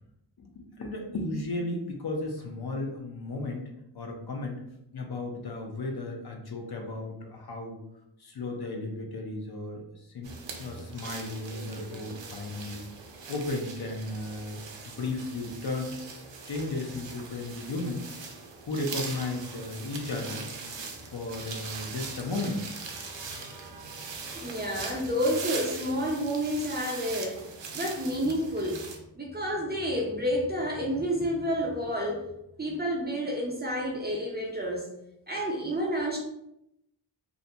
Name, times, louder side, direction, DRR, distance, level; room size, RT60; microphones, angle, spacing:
voice 1, 0.4-3.7 3.9-4.6 4.9-7.8 8.2-10.3 10.6-12.9 13.3-14.6 14.9-18.1 18.7-20.5 21.0-22.7, left 2 dB, 60° left, 2 dB, 0.5 m, -35 dB
sound 1, 10.2-29.0, right 4 dB, 80° right, 0.5 m, -41 dB
voice 2, 24.3-27.4 27.7-28.8 29.1-32.2 32.6-34.9 35.3-36.2, equal, 25° right, -1 dB, 0.4 m, -29 dB
2.5 x 2.1 x 2.6 m, 0.82 s
wide cardioid pair, 100°, 43 cm